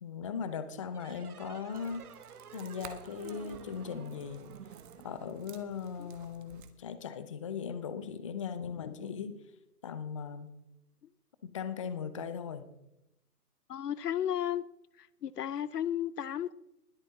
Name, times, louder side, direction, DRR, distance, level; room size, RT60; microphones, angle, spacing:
voice 1, 0.0-2.1 2.5-4.5 5.0-9.4 9.8-10.5 11.4-12.7, left 6 dB, 20° left, 12 dB, 0.5 m, -38 dB
sound 1, 0.9-6.2, right 8 dB, 70° right, 1.3 m, -51 dB
sound 2, 1.7-6.7, right 8 dB, 35° right, 1.4 m, -54 dB
voice 2, 13.7-14.6 15.0-16.5, left 10 dB, 85° left, 18 dB, 0.7 m, -34 dB
20.0 x 8.4 x 4.1 m, 0.90 s
hypercardioid pair, 140°, 46 cm